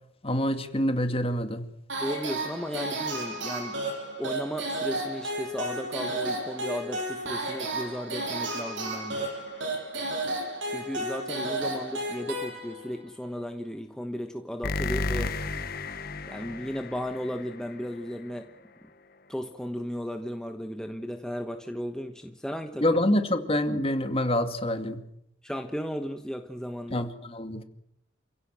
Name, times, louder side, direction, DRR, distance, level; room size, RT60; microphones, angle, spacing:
voice 1, 0.2-1.7 22.8-25.1 26.9-27.6, left 1 dB, 30° left, 2.3 m, -26 dB
sound 1, 1.9-13.0, right 1 dB, 75° right, 7.4 m, -33 dB
voice 2, 2.0-3.8 4.2-9.3 10.7-15.4 16.3-18.5 19.3-23.0 25.4-27.1, equal, 5° left, 1.2 m, -35 dB
sound 2, 9.1-9.8 14.6-18.3, left 3 dB, 50° left, 1.5 m, -34 dB
28.5 x 16.5 x 7.6 m
head